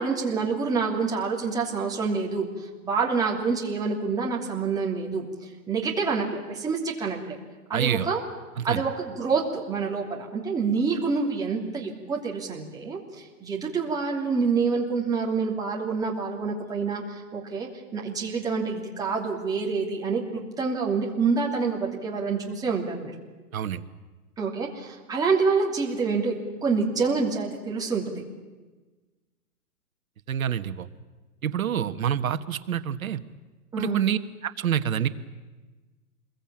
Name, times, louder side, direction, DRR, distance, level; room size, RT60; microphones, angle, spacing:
voice 1, 0.0-2.5 2.8-5.3 5.7-7.3 7.7-8.2 8.6-23.1 24.4-26.4 26.6-28.2 33.7-34.0, right 4 dB, 10° right, -2 dB, 2.8 m, -27 dB
voice 2, 7.7-8.1 8.7-8.8 23.5-23.8 30.3-30.9 31.4-33.2 33.8-35.1, right 9 dB, 60° right, 11 dB, 1.5 m, -27 dB
27.0 x 22.0 x 8.8 m, 1.3 s
hypercardioid pair, 160°, 46 cm